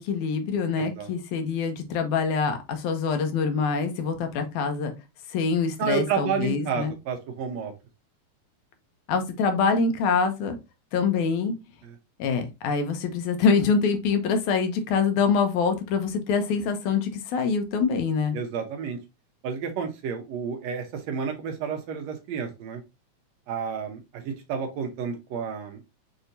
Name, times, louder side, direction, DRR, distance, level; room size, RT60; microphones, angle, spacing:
voice 1, 0.0-4.9 5.3-6.9 9.1-10.6 10.9-11.5 12.2-18.4, left 5 dB, 85° left, 7 dB, 2.2 m, -25 dB
voice 2, 0.8-1.1 5.8-7.7 11.8-12.0 18.3-19.0 19.4-22.8 23.5-25.9, right 6 dB, 75° right, 4 dB, 1.8 m, -31 dB
6.2 x 2.7 x 2.5 m, 0.25 s
omnidirectional pair, 3.4 m